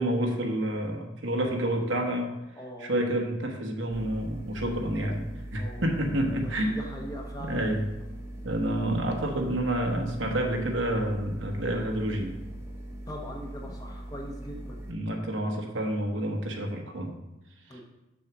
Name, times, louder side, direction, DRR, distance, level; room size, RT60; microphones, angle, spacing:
voice 1, 0.0-2.3 2.8-5.2 5.5-6.8 7.4-7.9 8.4-12.3 14.9-17.1 17.7-17.8, right 1 dB, 70° right, 2 dB, 1.1 m, -29 dB
voice 2, 2.6-2.9 4.9-5.1 5.6-5.8 6.4-7.6 13.1-14.8 17.7-17.8, equal, 20° left, 0 dB, 1.0 m, -41 dB
sound 1, 3.9-14.9, right 1 dB, 15° right, 0.9 m, -41 dB
6.4 x 4.2 x 6.0 m, 0.96 s
head